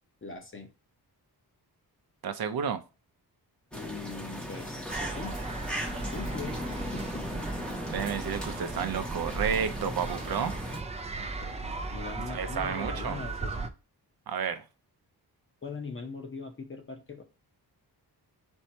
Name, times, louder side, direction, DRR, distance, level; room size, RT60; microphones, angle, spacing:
voice 1, 0.2-0.7 3.7-5.4 6.1-7.5 11.2-13.7 15.6-17.2, left 4 dB, 30° left, 0.9 m, -41 dB
voice 2, 2.2-2.8 7.9-10.5 12.3-13.2 14.3-14.6, right 7 dB, 65° right, 0.6 m, -31 dB
sound 1, 3.7-10.8, equal, 5° left, 0.8 m, -37 dB
sound 2, 4.9-13.7, right 3 dB, 15° right, 0.4 m, -37 dB
4.4 x 2.7 x 4.3 m
wide cardioid pair, 175°, 40 cm